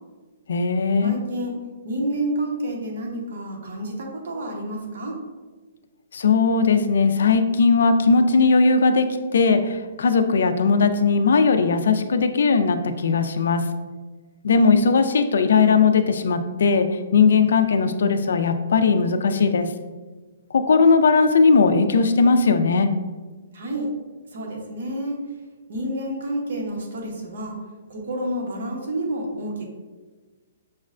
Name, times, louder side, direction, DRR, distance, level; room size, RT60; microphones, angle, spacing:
voice 1, 0.5-1.2 6.1-9.1 9.3-13.6 14.4-19.7 20.5-22.9, left 4 dB, 75° left, 8 dB, 0.3 m, -18 dB
voice 2, 1.0-1.5 1.8-5.2 23.5-23.9 24.3-25.2 25.7-27.6 27.9-29.6, right 1 dB, 65° right, 0 dB, 0.8 m, -29 dB
5.9 x 2.1 x 2.4 m, 1.3 s
hypercardioid pair, 170°, 0 cm